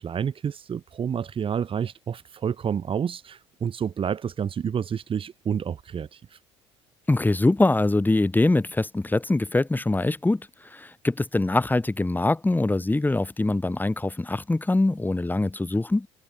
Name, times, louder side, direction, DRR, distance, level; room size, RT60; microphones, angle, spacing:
voice 1, 0.0-6.4, right 7 dB, 40° right, 2.8 m, -29 dB
voice 2, 7.1-16.1, left 2 dB, 15° left, 7.5 m, -23 dB
hypercardioid pair, 65°, 14 cm